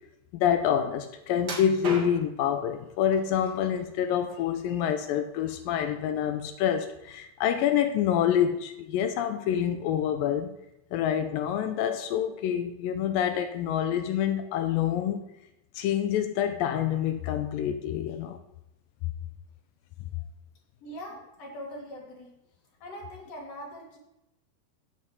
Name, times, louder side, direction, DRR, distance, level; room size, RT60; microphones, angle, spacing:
voice 1, 0.3-10.6 10.9-15.2 15.8-18.4, left 9 dB, 85° left, 7 dB, 2.0 m, -27 dB
sound 1, 1.4-2.5 3.1-3.8 4.2-5.1 5.5-5.7 6.2-6.3, right 3 dB, 55° right, 1.1 m, -38 dB
voice 2, 20.8-22.4 22.8-24.0, equal, 40° left, -1 dB, 3.0 m, -42 dB
8.2 x 7.7 x 7.8 m, 0.88 s
omnidirectional pair, 4.9 m